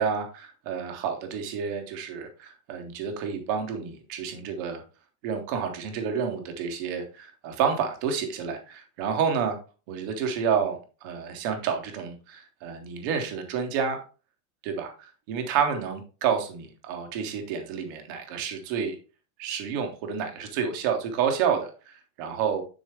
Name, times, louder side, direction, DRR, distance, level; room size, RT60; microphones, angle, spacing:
voice 1, 0.0-4.8 5.2-9.6 9.9-14.0 14.6-19.0 19.4-22.6, right 7 dB, 15° right, 5 dB, 0.4 m, -29 dB
9.5 x 3.9 x 3.3 m, 0.33 s
supercardioid pair, 175°, 45 cm